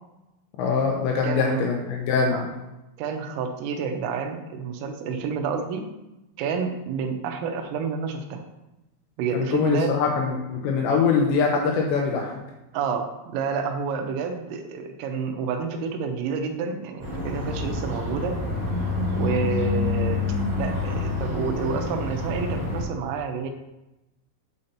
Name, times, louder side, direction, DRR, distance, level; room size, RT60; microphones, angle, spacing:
voice 1, 0.6-2.4 9.3-12.4, left 5 dB, 80° left, 0 dB, 2.7 m, -23 dB
voice 2, 1.2-1.7 2.3-2.4 3.0-5.9 6.4-8.4 9.2-9.9 12.7-18.4 19.1-20.3 20.6-23.5, right 5 dB, 90° right, 4 dB, 3.4 m, -29 dB
sound 1, 17.0-22.8, left 3 dB, 20° right, 1.5 m, -27 dB
8.9 x 6.6 x 2.8 m, 0.97 s
omnidirectional pair, 5.9 m